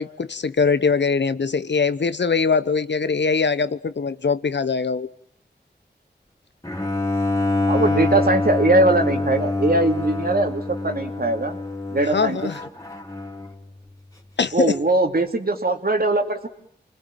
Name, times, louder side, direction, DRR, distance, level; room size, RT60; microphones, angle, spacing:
voice 1, 0.0-5.1 12.1-12.6 14.4-14.8, left 5 dB, 75° left, 14 dB, 1.0 m, -22 dB
Bowed string instrument, 6.6-13.7, left 2 dB, 20° left, 3.5 m, -25 dB
voice 2, 7.7-11.6 11.9-12.5 14.5-16.5, right 2 dB, 55° right, 5 dB, 3.0 m, -21 dB
28.5 x 21.0 x 9.1 m, 0.70 s
cardioid pair, 45°, 18 cm